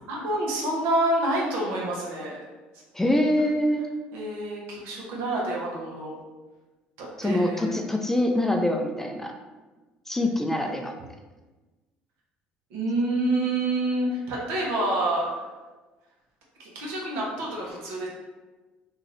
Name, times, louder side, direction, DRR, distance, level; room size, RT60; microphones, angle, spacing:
voice 1, 0.1-2.4 4.1-6.1 7.0-7.8 12.7-15.5 16.6-18.1, right 1 dB, 70° right, -3 dB, 0.9 m, -27 dB
voice 2, 2.9-3.9 7.2-9.3 10.1-10.9, left 1 dB, 10° left, 3 dB, 0.4 m, -24 dB
2.8 x 2.4 x 3.2 m, 1.2 s
hypercardioid pair, 70°, 4 cm